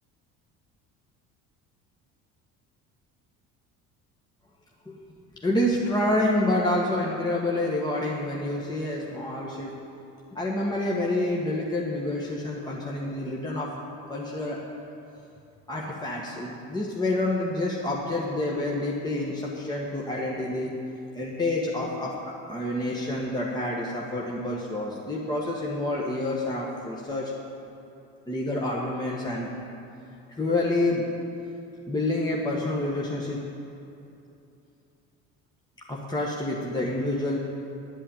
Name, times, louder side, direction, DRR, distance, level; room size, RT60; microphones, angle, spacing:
voice 1, 5.4-9.7 10.3-13.7 14.1-14.6 15.7-20.7 21.1-22.1 22.5-27.3 28.3-29.5 30.4-31.0 31.9-33.4 35.9-37.4, left 1 dB, 15° left, -3 dB, 1.4 m, -28 dB
11.0 x 5.5 x 8.7 m, 2.8 s
supercardioid pair, 90°, 32 cm